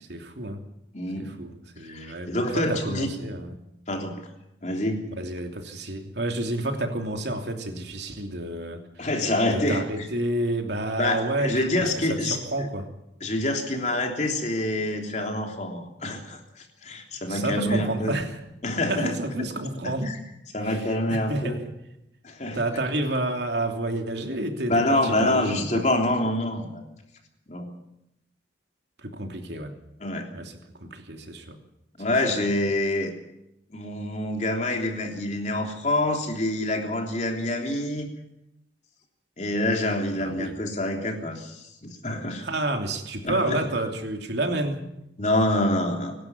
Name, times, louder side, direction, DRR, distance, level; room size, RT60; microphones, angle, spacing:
voice 1, 0.1-0.6 1.2-3.6 5.2-9.1 9.4-12.9 17.3-18.4 18.9-20.1 20.6-21.6 22.5-25.9 29.0-29.7 30.3-31.6 40.2-40.5 42.4-44.8, right 1 dB, 70° right, 4 dB, 2.9 m, -30 dB
voice 2, 0.9-1.3 1.8-3.1 3.9-4.2 4.6-5.0 9.0-10.1 11.0-12.7 13.2-16.4 16.8-18.1 18.6-19.1 19.8-20.1 20.5-21.6 22.2-22.6 24.7-26.8 27.5-27.7 30.0-30.3 32.0-33.1 33.7-38.1 39.4-42.4 43.2-43.6 45.2-46.1, left 1 dB, 40° left, 2 dB, 3.4 m, -26 dB
24.0 x 12.0 x 9.6 m, 0.86 s
head